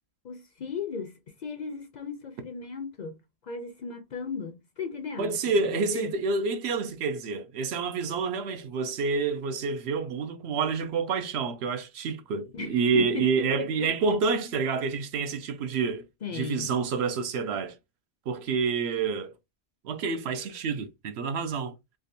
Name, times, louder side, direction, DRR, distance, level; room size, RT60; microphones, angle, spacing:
voice 1, 0.2-3.2 3.4-5.4 5.7-6.1 12.5-13.9 16.2-16.7, left 5 dB, 55° left, 0.5 m, -36 dB
voice 2, 5.2-16.1 16.3-17.8 18.3-19.3 19.8-21.7, right 5 dB, 80° right, 0.9 m, -28 dB
3.5 x 2.4 x 2.6 m
omnidirectional pair, 1.1 m